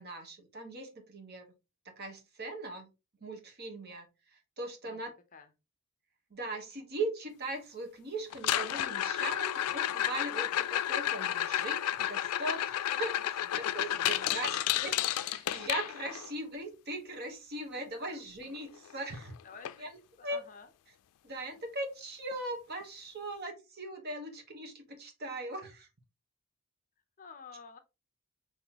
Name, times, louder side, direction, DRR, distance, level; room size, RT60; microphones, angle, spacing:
voice 1, 0.0-1.5 1.8-2.9 3.2-5.1 6.3-19.3 19.8-19.9 20.2-20.4 21.2-25.9, right 2 dB, 45° right, 1.2 m, -40 dB
sound 1, 8.3-16.3 18.6-18.7 18.9-19.2 19.6-19.7 20.3-20.4 22.3-22.4, left 12 dB, 85° left, 0.3 m, -32 dB
voice 2, 14.0-14.7 18.1-18.2 19.4-19.9 20.2-20.7 27.2-27.8, left 5 dB, 35° left, 0.6 m, -49 dB
5.6 x 3.0 x 2.9 m
head